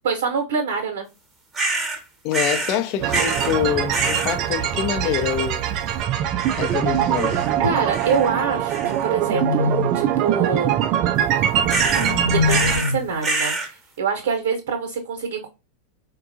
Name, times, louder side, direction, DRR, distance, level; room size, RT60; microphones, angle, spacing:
voice 1, 0.0-1.1 7.6-10.8 12.3-13.5 14.0-15.5, right 5 dB, 55° right, 0.8 m, -25 dB
sound 1, 1.5-2.0 2.3-2.8 3.1-3.6 3.9-4.4 6.4-6.8 7.1-7.5 7.9-8.3 8.7-9.1 11.7-12.1 12.5-12.9 13.2-13.7, right 3 dB, 15° right, 0.8 m, -26 dB
voice 2, 2.2-5.6 6.6-7.5, left 10 dB, 40° left, 0.6 m, -25 dB
sound 2, 3.0-12.8, right 10 dB, 40° right, 0.3 m, -23 dB
sound 3, 6.6-7.5 8.8-10.1 11.5-13.2, left 4 dB, 90° right, 0.6 m, -26 dB
4.3 x 2.2 x 2.6 m
figure-of-eight pair, 90°, 0 cm